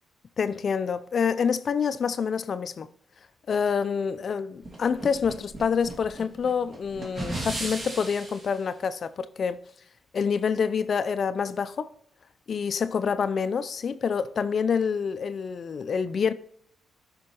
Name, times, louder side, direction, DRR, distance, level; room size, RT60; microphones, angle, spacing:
voice 1, 0.4-2.9 3.5-9.6 10.1-11.9 12.5-16.3, left 6 dB, 55° left, 0.4 m, -27 dB
sound 1, 4.6-8.5, right 2 dB, 45° right, 2.4 m, -36 dB
11.5 x 5.2 x 2.9 m
hypercardioid pair, 45°, 0 cm